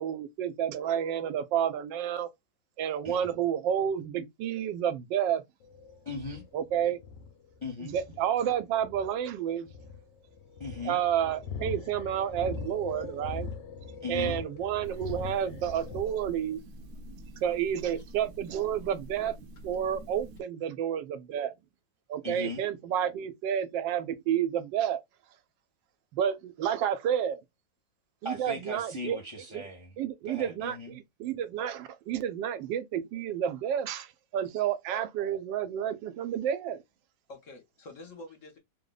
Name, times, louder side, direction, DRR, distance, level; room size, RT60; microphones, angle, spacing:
voice 1, 0.0-2.3 2.8-5.4 6.5-7.0 7.8-9.7 10.8-13.5 14.1-16.6 17.4-19.4 19.6-21.5 22.1-25.0 26.1-27.4 28.2-29.2 29.5-29.6 30.0-36.8, right 9 dB, 85° right, 1.3 m, -30 dB
sound 1, 5.6-16.0, left 5 dB, 80° left, 1.3 m, -41 dB
voice 2, 6.0-6.5 7.6-7.9 10.6-11.0 14.0-14.4 22.2-22.7 28.2-29.9 30.3-31.0, left 2 dB, 35° left, 0.5 m, -38 dB
sound 2, 14.8-20.4, right 1 dB, 70° right, 0.9 m, -46 dB
voice 3, 37.3-38.6, left 2 dB, 55° left, 1.0 m, -47 dB
3.2 x 2.1 x 3.7 m
omnidirectional pair, 1.9 m